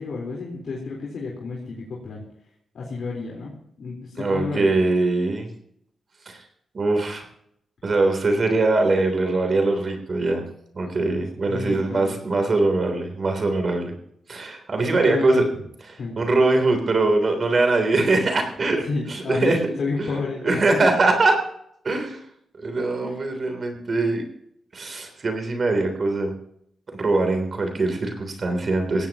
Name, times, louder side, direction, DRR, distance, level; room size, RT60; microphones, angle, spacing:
voice 1, 0.0-2.2 2.7-4.8 11.5-12.4 14.9-15.4 16.0-16.2 18.8-20.6 23.0-23.2, left 4 dB, 65° left, -3 dB, 4.2 m, -30 dB
voice 2, 4.2-5.5 6.2-6.4 6.7-7.2 7.8-10.4 10.7-13.9 14.3-15.4 16.2-19.7 20.0-20.2 20.4-21.4 21.8-22.2 22.5-24.2 24.7-26.3 26.9-29.1, right 2 dB, 40° right, 5 dB, 3.4 m, -22 dB
18.0 x 16.5 x 3.0 m, 0.72 s
wide cardioid pair, 115°, 0 cm